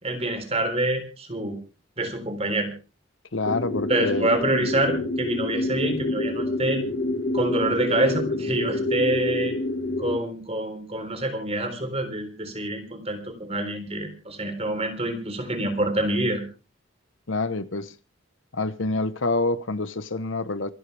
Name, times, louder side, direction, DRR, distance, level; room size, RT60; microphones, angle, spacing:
voice 1, 0.0-1.6 2.0-2.7 3.9-6.8 7.3-9.6 10.0-16.4, right 1 dB, 30° right, 3.8 m, -26 dB
voice 2, 3.3-4.3 17.3-17.9 18.5-20.7, left 3 dB, 75° left, 1.1 m, -27 dB
sound 1, 3.4-10.2, left 2 dB, 55° left, 2.1 m, -27 dB
27.0 x 11.0 x 3.5 m
head